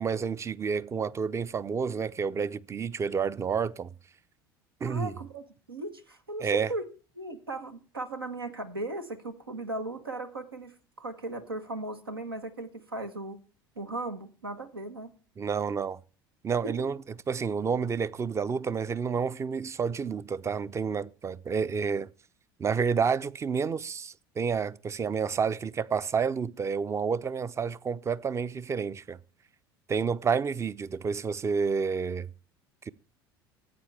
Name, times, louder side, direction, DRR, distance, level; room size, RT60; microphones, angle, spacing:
voice 1, 0.0-3.9 4.8-5.1 6.4-6.7 15.4-16.0 16.4-17.0 17.3-22.1 22.6-29.2 29.9-32.3, right 6 dB, 25° right, 0.5 m, -29 dB
voice 2, 4.8-6.9 7.2-13.4 13.8-15.1 16.6-16.7, right 2 dB, 85° right, 1.2 m, -37 dB
15.0 x 8.5 x 3.4 m
figure-of-eight pair, 70°, 12 cm